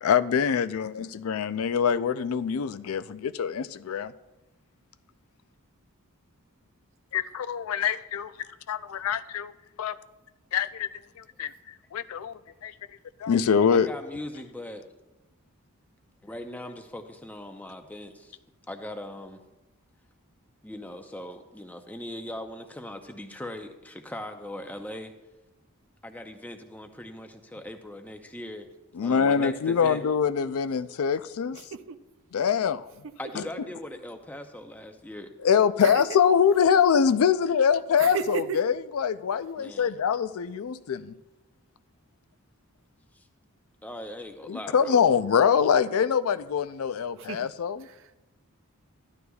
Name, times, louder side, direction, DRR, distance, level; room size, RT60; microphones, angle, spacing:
voice 1, 0.0-4.1 7.1-8.3 8.7-9.5 9.8-9.9 10.5-10.9 11.2-12.7 13.2-13.9 28.9-31.6 32.3-32.9 33.4-33.5 35.4-41.1 44.5-47.8, left 7 dB, 70° left, 12 dB, 0.4 m, -24 dB
voice 2, 13.7-14.8 16.2-18.4 18.7-19.4 20.6-25.1 26.0-28.7 29.0-30.0 33.2-35.3 39.6-39.9 43.1-43.3 43.8-45.0, left 1 dB, 5° left, 6 dB, 0.6 m, -39 dB
voice 3, 31.5-32.0 33.0-33.1 35.8-36.2 38.0-38.6 47.2-47.5 47.8-48.3, right 7 dB, 60° right, 11 dB, 0.5 m, -34 dB
14.0 x 11.0 x 2.3 m, 1.0 s
head